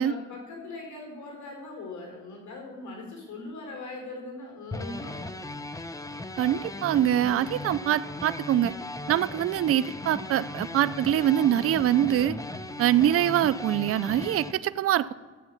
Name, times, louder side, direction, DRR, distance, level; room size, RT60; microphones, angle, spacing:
voice 1, 0.0-5.1, left 2 dB, 70° left, 1 dB, 4.7 m, -40 dB
sound 1, 4.7-14.5, left 2 dB, 10° left, 0.9 m, -37 dB
voice 2, 6.4-8.8 9.1-12.4 12.8-15.1, right 11 dB, 50° right, 16 dB, 0.5 m, -24 dB
11.5 x 8.1 x 8.4 m, 1.4 s
cardioid pair, 90°, 30 cm